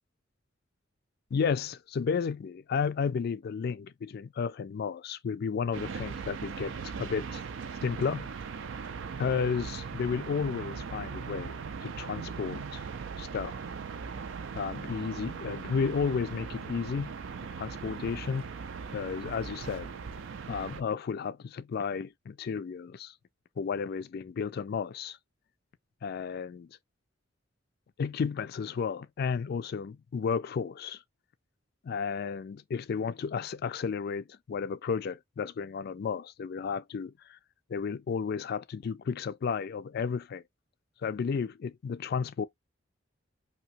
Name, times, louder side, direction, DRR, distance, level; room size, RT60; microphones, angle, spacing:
voice 1, 1.3-7.4 7.8-8.3 9.2-12.8 13.2-13.6 14.5-17.1 17.6-18.5 18.9-19.9 20.5-23.1 23.6-25.2 26.0-26.8 28.0-31.0 31.8-37.4 37.7-40.4 41.0-42.5, left 6 dB, 55° left, 0.3 m, -33 dB
sound 1, 5.7-20.8, right 5 dB, 75° right, 0.4 m, -39 dB
2.9 x 2.7 x 2.7 m
head